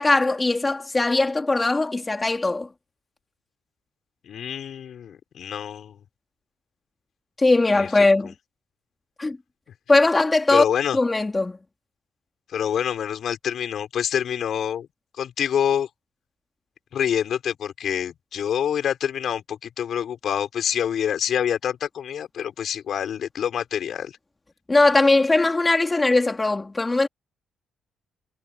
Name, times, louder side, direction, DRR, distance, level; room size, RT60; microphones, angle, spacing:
voice 1, 0.0-2.7 7.4-8.3 9.2-9.4 9.9-10.6 10.9-11.6 24.7-27.1, left 2 dB, 20° left, 3.4 m, -20 dB
voice 2, 4.2-6.0 7.7-8.1 10.5-11.0 12.5-14.9 15.2-15.9 16.9-24.1, left 9 dB, 65° left, 5.0 m, -26 dB
cardioid pair, 90°, 0 cm